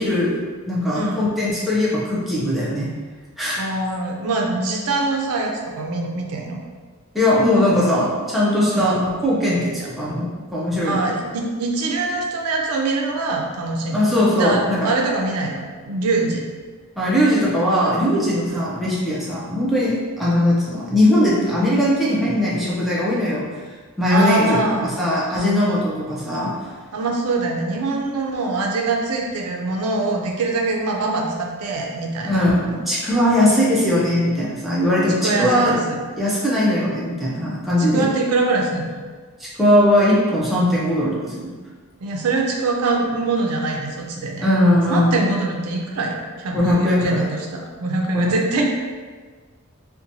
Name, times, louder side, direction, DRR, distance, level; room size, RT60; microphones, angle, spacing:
voice 1, 0.0-2.9 3.4-3.6 7.1-11.1 13.9-14.9 17.0-23.5 24.0-26.6 32.2-35.8 36.2-38.1 39.4-41.5 44.4-45.3 46.5-47.3 48.1-48.3, left 1 dB, ahead, -8 dB, 0.4 m, -19 dB
voice 2, 0.9-1.3 3.6-6.6 8.7-8.9 9.8-9.9 10.8-16.4 18.5-18.7 24.1-24.9 26.9-32.4 32.7-32.8 35.0-36.0 37.9-39.0 42.0-44.5 44.9-48.6, right 3 dB, 85° right, 1 dB, 0.4 m, -23 dB
2.8 x 2.1 x 2.6 m, 1.5 s
head